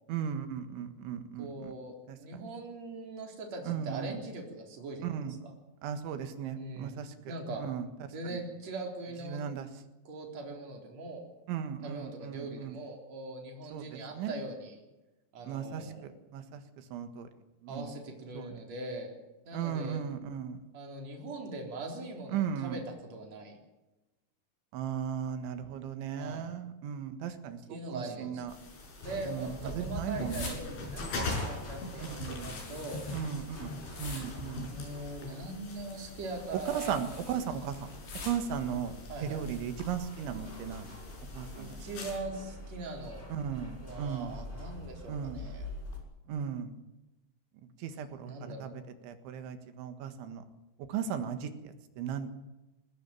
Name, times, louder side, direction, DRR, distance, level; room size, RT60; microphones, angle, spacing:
voice 1, 0.1-1.7 2.1-2.2 3.6-4.2 5.0-5.4 5.8-7.9 8.3-8.4 9.2-9.7 11.5-12.8 13.7-14.3 15.4-17.3 17.6-18.0 18.3-18.5 19.5-20.7 22.3-22.8 24.7-28.5 29.3-30.6 32.0-32.5 33.1-34.7 36.5-37.9 38.2-39.0 39.2-41.0 41.3-41.8 43.3-44.4 45.1-45.4 46.3-46.7 47.6-50.4 50.9-52.3, right 8 dB, 85° right, 8 dB, 4.1 m, -37 dB
voice 2, 1.4-5.1 6.6-6.9 7.3-7.6 8.1-9.4 10.0-11.2 11.8-14.8 15.3-16.1 17.7-19.1 19.4-20.0 20.7-22.8 23.1-23.5 26.2-26.5 27.7-28.4 29.0-33.0 34.5-37.0 37.5-37.6 39.1-39.4 41.5-43.2 43.8-45.7 48.2-48.7, right 2 dB, 40° right, 1 dB, 4.7 m, -41 dB
sound 1, 28.4-46.0, left 2 dB, 10° left, 4.0 m, -46 dB
sound 2, 28.5-42.2, left 3 dB, 90° left, 8.2 m, -43 dB
sound 3, 29.0-39.9, left 2 dB, 65° left, 8.2 m, -48 dB
21.0 x 17.5 x 9.1 m, 1.0 s
omnidirectional pair, 5.2 m